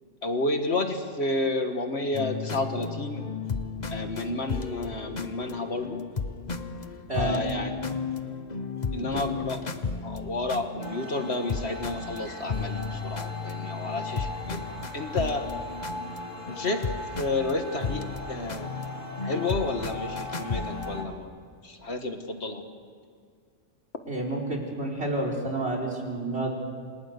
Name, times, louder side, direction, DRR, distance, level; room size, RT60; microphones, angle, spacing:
voice 1, 0.2-3.3 3.9-6.0 7.2-7.8 8.9-9.6 10.0-15.5 16.5-18.7 19.2-21.4 21.6-22.6, left 2 dB, 55° left, 5 dB, 2.0 m, -31 dB
sound 1, 2.1-21.2, left 4 dB, 35° left, 1.2 m, -34 dB
voice 2, 7.1-7.4 8.9-9.2 24.0-26.5, right 2 dB, 55° right, 1 dB, 5.0 m, -30 dB
sound 2, 10.8-21.0, left 2 dB, 80° left, 2.5 m, -39 dB
28.5 x 27.0 x 6.8 m, 2.1 s
omnidirectional pair, 1.3 m